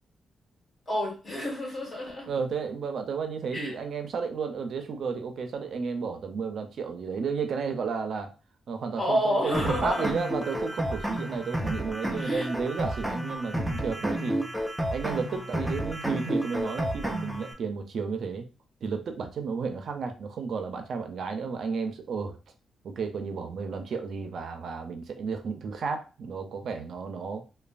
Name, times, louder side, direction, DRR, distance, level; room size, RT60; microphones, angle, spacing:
voice 1, 0.9-2.3 3.5-3.8 9.0-10.0 12.1-12.5, equal, 35° left, -2 dB, 1.6 m, -29 dB
voice 2, 2.3-8.3 8.7-14.4 14.9-18.4 18.8-22.4 22.8-27.4, right 5 dB, 65° right, 6 dB, 0.4 m, -32 dB
sound 1, 9.5-17.5, equal, 5° right, 0.4 m, -31 dB
3.0 x 2.2 x 2.4 m, 0.32 s
cardioid pair, 115°, 0 cm